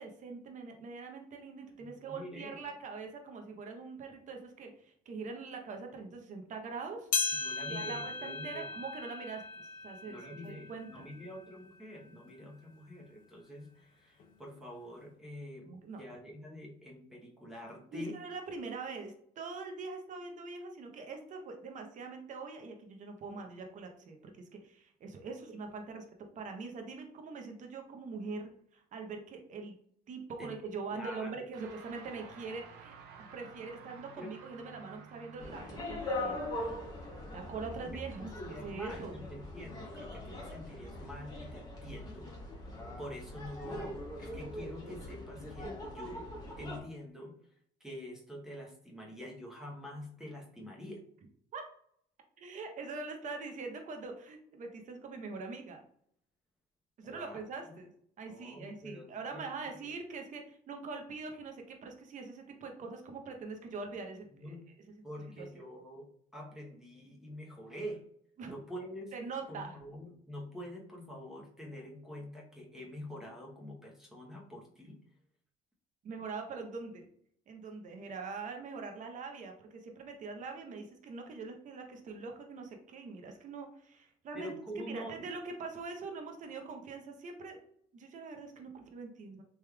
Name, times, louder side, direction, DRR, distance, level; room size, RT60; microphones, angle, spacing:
voice 1, 0.0-7.1 7.7-11.0 15.7-16.0 17.9-24.3 24.6-29.7 30.1-32.9 33.3-36.8 37.3-38.3 38.6-39.2 51.5-51.6 52.4-55.8 57.0-57.9 58.2-64.6 65.4-65.5 68.4-68.5 69.1-69.8 76.0-77.1 77.5-87.6 87.9-89.4, right 4 dB, 50° right, 4 dB, 0.7 m, -43 dB
voice 2, 1.8-2.7 7.3-8.7 10.1-18.2 30.4-30.5 30.9-31.5 34.2-34.4 37.8-42.3 42.6-46.3 46.6-47.5 47.8-51.1 57.0-57.8 58.3-59.9 64.3-64.6 65.0-68.1 68.5-69.1 69.5-75.0 84.3-85.2, equal, 5° right, -2 dB, 0.8 m, -46 dB
sound 1, 7.1-11.8 12.3-12.4 13.2-13.3 14.2-14.3, left 5 dB, 55° left, 0.5 m, -37 dB
sound 2, 31.5-41.0, right 5 dB, 85° right, 0.5 m, -55 dB
sound 3, 35.4-46.8, left 1 dB, 20° left, 1.1 m, -42 dB
3.4 x 3.1 x 2.3 m, 0.67 s
cardioid pair, 110°, 17 cm